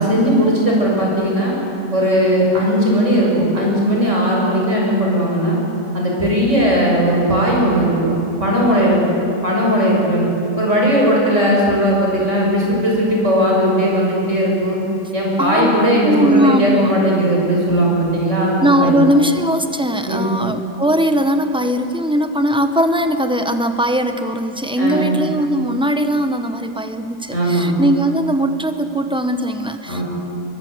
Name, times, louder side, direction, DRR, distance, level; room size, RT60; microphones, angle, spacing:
voice 1, 0.0-1.5 1.9-5.6 5.9-8.1 8.4-9.1 9.4-10.3 10.6-14.8 15.1-19.0 20.1-20.3 24.8-25.1 27.3-27.7 29.9-30.0, equal, 45° right, -3 dB, 6.6 m, -17 dB
voice 2, 15.4-16.9 18.6-30.0, equal, 5° right, 7 dB, 0.9 m, -19 dB
23.0 x 22.0 x 8.1 m, 3.0 s
omnidirectional pair, 1.8 m